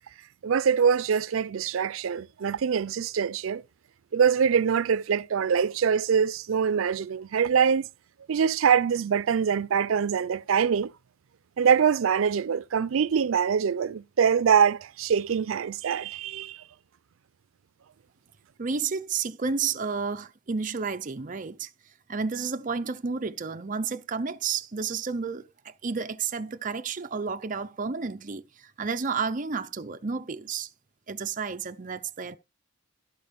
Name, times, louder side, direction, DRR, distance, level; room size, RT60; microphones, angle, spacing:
voice 1, 0.4-3.6 4.1-7.9 8.3-10.9 11.6-16.6, right 7 dB, 90° right, 0.4 m, -24 dB
voice 2, 18.6-21.7 22.1-30.7 31.1-32.4, right 5 dB, 40° right, 0.6 m, -31 dB
13.0 x 4.4 x 5.1 m
head